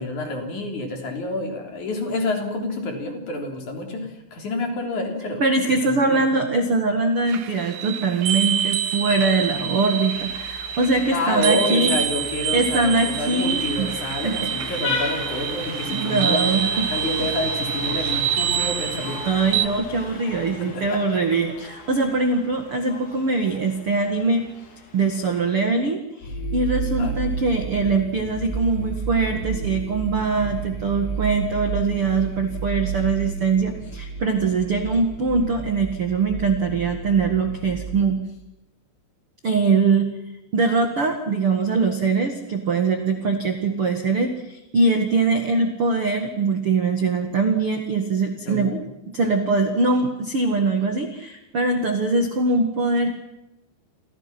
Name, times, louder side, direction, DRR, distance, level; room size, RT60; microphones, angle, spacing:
voice 1, 0.0-5.4 5.8-6.2 11.1-19.3 20.4-21.2 27.0-27.1 48.4-48.8, left 2 dB, 45° left, 3 dB, 4.5 m, -28 dB
voice 2, 5.4-12.0 12.5-14.0 14.2-14.7 15.9-16.9 19.2-24.5 24.9-38.2 39.4-40.1 40.5-48.7 49.1-53.1, right 3 dB, 50° right, 5 dB, 1.8 m, -22 dB
sound 1, 7.3-19.7, right 9 dB, 75° right, 1.9 m, -27 dB
Vehicle horn car horn honking, 8.9-25.7, left 3 dB, 90° left, 6.5 m, -37 dB
sound 2, 26.2-38.0, right 4 dB, 65° left, 8.7 m, -31 dB
29.5 x 24.5 x 6.0 m, 0.92 s
omnidirectional pair, 5.2 m